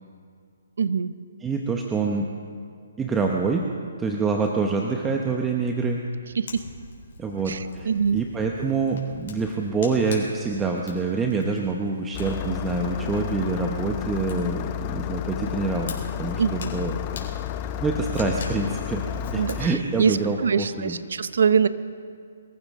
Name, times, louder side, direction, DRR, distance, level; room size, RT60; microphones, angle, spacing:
voice 1, 0.8-1.1 6.4-6.6 7.5-8.2 16.4-16.7 19.3-21.7, right 6 dB, 70° right, 14 dB, 0.6 m, -24 dB
voice 2, 1.4-2.3 3.0-3.6 4.0-6.0 7.2-15.9 16.2-16.9 17.8-19.1 19.3-21.0, right 4 dB, 10° right, 1 dB, 0.9 m, -26 dB
Fire, 6.5-20.2, left 4 dB, 60° left, 3.9 m, -44 dB
Engine starting, 12.1-19.7, left 11 dB, 30° left, 0.6 m, -31 dB
24.0 x 14.5 x 3.7 m, 2.2 s
hypercardioid pair, 155°, 0 cm